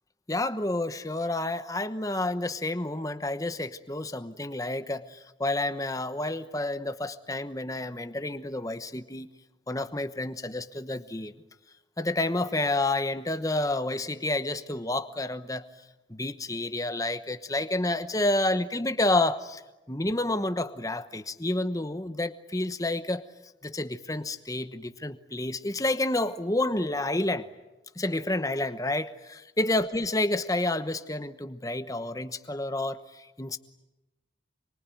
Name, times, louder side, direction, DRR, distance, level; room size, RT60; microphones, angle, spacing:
voice 1, 0.3-9.3 9.7-11.3 12.0-15.6 16.1-19.6 19.9-23.2 23.6-27.5 28.0-33.6, left 2 dB, 20° left, 11 dB, 1.0 m, -29 dB
26.5 x 24.0 x 9.2 m, 1.0 s
head